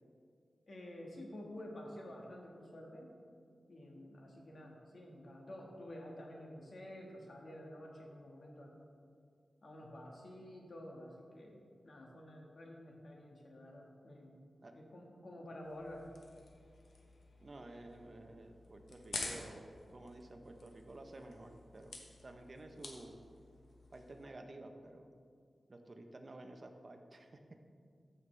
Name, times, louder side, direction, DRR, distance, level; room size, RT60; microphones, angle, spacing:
voice 1, 0.7-3.1 3.7-8.8 9.6-14.4 14.7-16.1, left 1 dB, 55° left, 0 dB, 1.5 m, -50 dB
sound 1, 15.6-24.2, left 3 dB, 85° left, 1.0 m, -50 dB
voice 2, 17.4-23.2 23.9-25.1 25.7-27.6, right 2 dB, 40° right, 5 dB, 0.7 m, -52 dB
14.5 x 5.4 x 3.3 m, 2.2 s
wide cardioid pair, 115°, 0 cm